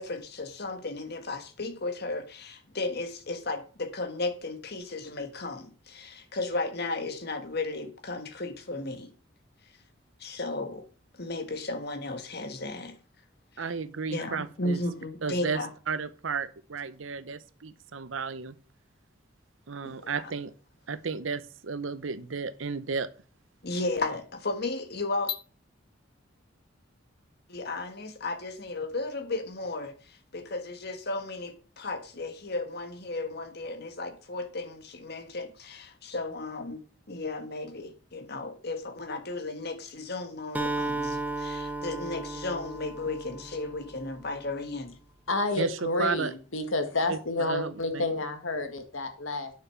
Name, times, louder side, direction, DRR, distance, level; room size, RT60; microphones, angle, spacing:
voice 1, 0.0-9.1 10.2-10.9 11.1-13.0 13.6-13.7 14.1-15.7 19.8-20.3 23.6-25.4 27.5-36.8 37.1-44.9, left 2 dB, 55° left, 1.6 m, -34 dB
voice 2, 13.6-14.8 15.2-15.6 15.9-18.6 19.7-20.5 20.9-23.1 45.6-46.3 47.1-48.0, right 5 dB, 80° right, 0.8 m, -33 dB
Acoustic guitar, 40.5-44.4, right 2 dB, 10° right, 0.9 m, -34 dB
voice 3, 45.3-49.5, left 2 dB, 90° left, 2.0 m, -30 dB
9.6 x 6.8 x 5.9 m
head